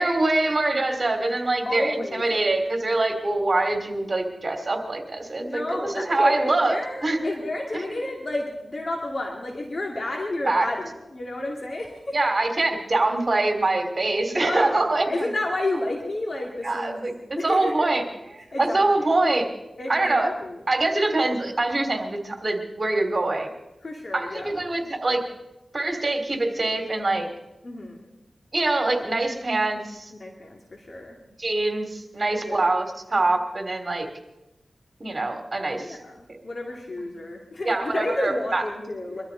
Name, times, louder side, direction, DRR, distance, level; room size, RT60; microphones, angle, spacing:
voice 1, 0.0-6.7 7.0-7.2 7.7-7.9 10.4-10.7 12.1-15.3 16.6-18.0 18.3-19.5 19.9-20.3 20.7-23.5 24.1-25.2 25.7-27.3 28.5-30.1 31.4-34.1 35.0-36.0 37.6-38.6, right 2 dB, 45° right, 5 dB, 2.8 m, -24 dB
voice 2, 1.6-2.5 5.4-12.3 14.3-17.1 17.4-17.9 18.5-19.0 19.8-20.6 21.1-21.2 23.8-24.6 27.6-28.0 30.2-31.2 32.4-32.8 35.8-39.2, left 2 dB, 55° left, 0 dB, 2.4 m, -31 dB
23.0 x 13.0 x 4.0 m, 0.95 s
cardioid pair, 50°, 0 cm